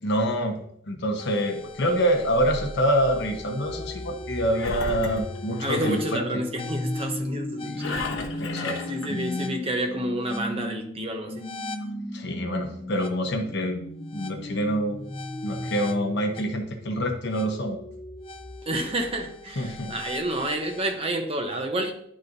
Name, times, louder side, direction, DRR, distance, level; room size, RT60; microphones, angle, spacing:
voice 1, 0.0-0.6 0.9-6.2 7.6-8.8 9.1-9.2 12.1-13.8 14.1-15.0 15.4-17.8 19.6-19.9, equal, 60° left, 3 dB, 1.0 m, -26 dB
sound 1, 1.2-20.9, left 1 dB, 30° left, 0.6 m, -36 dB
Engine, 4.5-6.1 7.8-9.1, left 3 dB, 90° left, 1.0 m, -34 dB
voice 2, 5.6-8.0 8.9-11.4 18.7-21.9, right 1 dB, 30° right, 5 dB, 0.8 m, -29 dB
11.0 x 4.2 x 2.6 m, 0.68 s
head